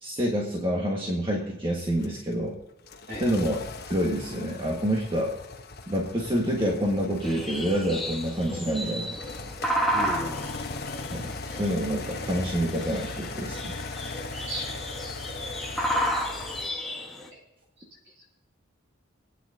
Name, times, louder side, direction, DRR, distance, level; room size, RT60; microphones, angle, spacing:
voice 1, 0.0-2.6 3.1-3.6 3.9-5.4 5.9-9.3 11.1-13.8, equal, 25° right, -2 dB, 1.6 m, -27 dB
sound 1, 2.0-16.7, left 3 dB, 50° left, 1.0 m, -39 dB
sound 2, 7.2-17.3, equal, ahead, 1.3 m, -32 dB
voice 2, 9.9-10.8 14.3-14.8 17.3-17.4 18.2-18.3, right 1 dB, 60° right, -1 dB, 6.0 m, -36 dB
27.5 x 9.4 x 2.8 m, 0.91 s
head